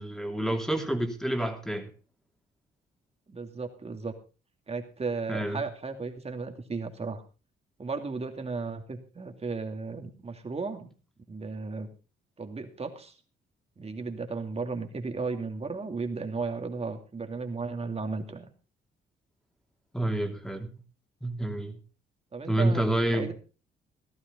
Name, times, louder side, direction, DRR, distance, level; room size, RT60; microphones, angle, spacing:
voice 1, 0.0-1.9 5.3-5.6 19.9-20.7 21.2-21.8 22.5-23.3, right 1 dB, 5° left, 4 dB, 3.0 m, -28 dB
voice 2, 3.3-4.1 4.7-7.2 7.8-10.9 11.3-11.9 12.4-13.1 13.8-18.5 22.3-23.3, right 4 dB, 30° right, 6 dB, 2.6 m, -35 dB
15.5 x 12.5 x 4.0 m, 0.34 s
cardioid pair, 85°, 20 cm